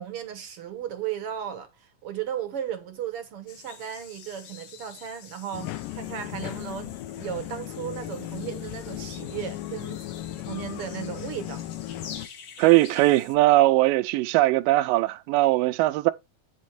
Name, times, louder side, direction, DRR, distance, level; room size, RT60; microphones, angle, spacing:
voice 1, 0.0-10.0 10.5-11.6, right 10 dB, 70° right, 1.4 m, -35 dB
sound 1, 3.5-13.4, left 7 dB, 50° left, 2.0 m, -47 dB
sound 2, 5.5-12.3, left 14 dB, 80° left, 2.3 m, -36 dB
voice 2, 12.6-16.1, right 18 dB, 85° right, 2.3 m, -20 dB
8.4 x 6.3 x 4.2 m
omnidirectional pair, 3.9 m